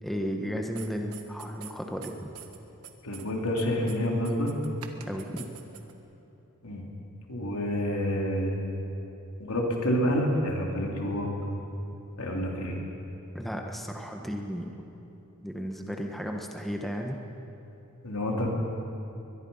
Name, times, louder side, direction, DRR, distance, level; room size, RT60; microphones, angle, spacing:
voice 1, 0.0-2.3 5.1-5.5 13.3-14.8 15.4-17.2, equal, ahead, 2 dB, 1.3 m, -34 dB
sound 1, 0.8-1.7 2.0-2.6 2.8-3.3 3.6-6.0, right 9 dB, 90° right, 1.5 m, -45 dB
voice 2, 3.0-4.5 6.6-6.8 7.3-8.6 9.4-11.3 12.2-12.8 18.0-18.5, equal, 85° left, 0 dB, 3.4 m, -28 dB
22.0 x 22.0 x 5.6 m, 3.0 s
head